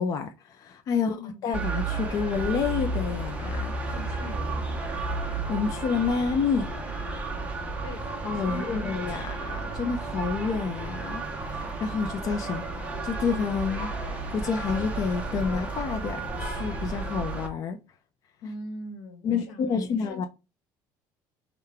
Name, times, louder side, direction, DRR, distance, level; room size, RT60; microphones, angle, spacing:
voice 1, 0.0-1.2 1.4-3.9 5.5-6.7 8.2-12.6 13.0-13.9 14.3-17.8 19.2-20.3, left 6 dB, 40° left, 0.5 m, -29 dB
voice 2, 0.9-1.4 3.9-4.9 7.8-9.1 18.4-20.3, left 2 dB, 85° left, 1.3 m, -42 dB
sound 1, 1.5-17.5, right 3 dB, 15° right, 0.8 m, -32 dB
5.6 x 2.3 x 3.3 m
cardioid pair, 155°, 9 cm